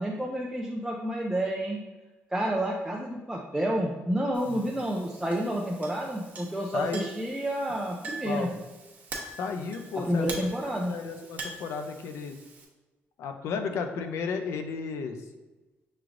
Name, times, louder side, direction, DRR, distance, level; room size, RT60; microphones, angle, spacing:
voice 1, 0.0-1.8 2.3-8.5 10.0-10.9, right 1 dB, 5° right, -2 dB, 0.4 m, -29 dB
Chink clink, 4.3-12.7, right 3 dB, 40° right, 0.8 m, -44 dB
voice 2, 6.7-7.0 8.2-8.5 9.3-10.3 10.9-12.4 13.2-15.2, left 5 dB, 90° left, 7 dB, 0.5 m, -33 dB
5.9 x 3.1 x 2.5 m, 1.2 s
cardioid pair, 155°, 4 cm